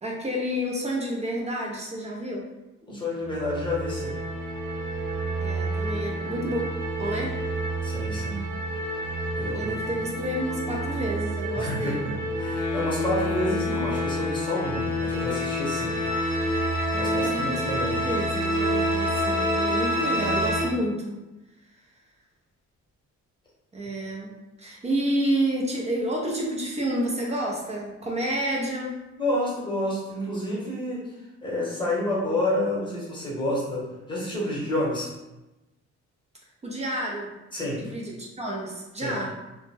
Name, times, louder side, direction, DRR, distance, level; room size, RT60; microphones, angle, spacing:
voice 1, 0.0-2.5 5.4-6.6 7.0-7.4 9.5-12.2 16.9-17.7 18.0-21.2 21.7-21.8 23.7-29.1 36.6-37.3 37.8-39.4, right 1 dB, 20° right, -2 dB, 0.5 m, -30 dB
voice 2, 2.9-4.2 7.8-8.4 9.3-9.7 11.5-16.0 17.0-18.0 29.2-35.1 37.5-37.8 39.0-39.2, left 1 dB, 15° left, -5 dB, 1.0 m, -29 dB
sound 1, 3.3-20.6, right 1 dB, 60° right, 1.0 m, -29 dB
sound 2, 12.3-16.9, left 7 dB, 75° left, 0.5 m, -31 dB
2.1 x 2.1 x 3.2 m, 1.0 s
cardioid pair, 90°, 30 cm